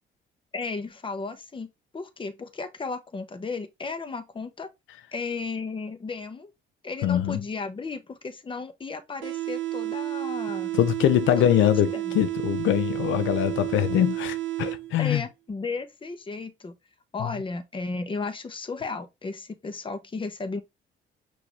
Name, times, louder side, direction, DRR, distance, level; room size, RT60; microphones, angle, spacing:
voice 1, 0.5-1.7 1.9-4.7 5.1-6.5 6.8-10.7 11.4-11.5 11.9-12.2 15.0-16.7 17.1-20.6, left 4 dB, 25° left, 0.8 m, -34 dB
voice 2, 7.0-7.4 10.7-15.2 17.2-17.3, left 12 dB, 80° left, 0.4 m, -23 dB
sound 1, 9.2-15.2, right 15 dB, 75° right, 0.5 m, -31 dB
5.9 x 2.6 x 3.0 m
cardioid pair, 90°, 20 cm